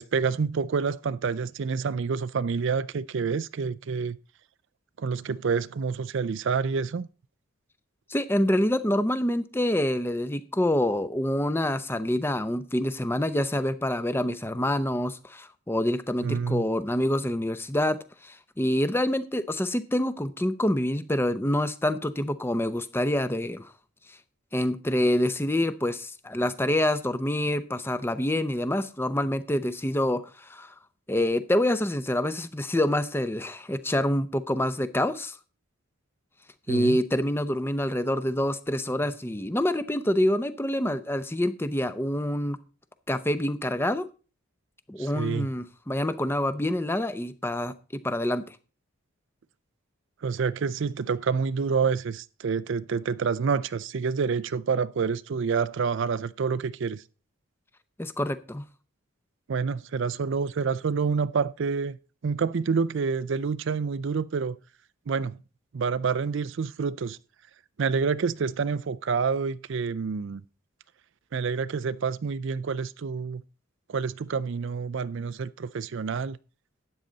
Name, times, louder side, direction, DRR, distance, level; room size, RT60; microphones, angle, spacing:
voice 1, 0.0-4.2 5.0-7.1 16.2-16.6 36.7-37.0 45.0-45.5 50.2-57.0 59.5-62.0 62.2-64.6 65.1-65.4 65.7-67.2 67.8-70.4 71.3-73.4 73.9-76.4, right 5 dB, 55° right, 0.4 m, -28 dB
voice 2, 8.1-18.0 18.2-23.7 24.5-30.7 31.1-35.4 36.7-42.6 43.1-44.1 44.9-47.7 48.0-48.6 58.0-58.7, left 1 dB, 10° left, 0.6 m, -26 dB
12.5 x 8.8 x 4.0 m
head